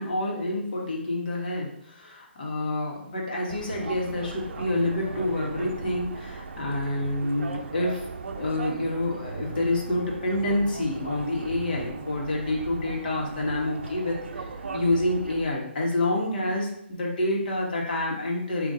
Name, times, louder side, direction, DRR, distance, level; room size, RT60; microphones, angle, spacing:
voice 1, 0.0-8.0 8.4-14.1 14.7-18.7, left 1 dB, 45° left, -3 dB, 1.4 m, -28 dB
sound 1, 3.5-15.4, right 4 dB, 85° right, 0.5 m, -38 dB
4.0 x 2.8 x 3.7 m, 0.71 s
hypercardioid pair, 160°, 6 cm